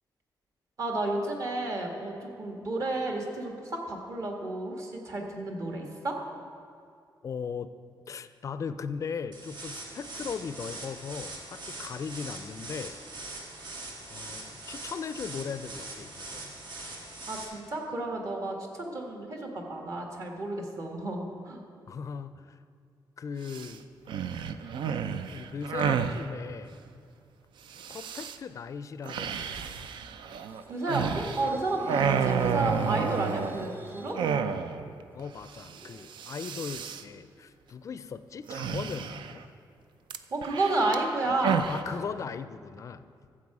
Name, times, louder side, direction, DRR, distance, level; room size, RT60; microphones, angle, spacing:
voice 1, 0.8-6.1 17.3-21.6 30.7-34.2 40.3-42.0, right 2 dB, 45° right, 1 dB, 1.5 m, -32 dB
voice 2, 7.2-7.7 8.1-12.9 14.1-16.5 21.9-22.6 23.2-23.8 25.3-26.8 27.9-29.9 35.1-39.4 41.7-43.0, left 6 dB, 40° left, 12 dB, 0.4 m, -38 dB
sound 1, 9.3-17.4, right 2 dB, 65° right, 1.7 m, -42 dB
sound 2, 23.5-23.7 24.1-26.2 27.7-28.4 29.1-31.5 31.8-33.7 34.1-34.9 35.2-35.3 35.5-35.8 36.1-37.0 38.5-39.4 40.1-41.8, right 7 dB, 85° right, 0.5 m, -31 dB
sound 3, 30.3-34.2 34.7-36.8, right 2 dB, 25° right, 0.7 m, -48 dB
13.5 x 7.6 x 4.8 m, 2.4 s
wide cardioid pair, 150°, 8 cm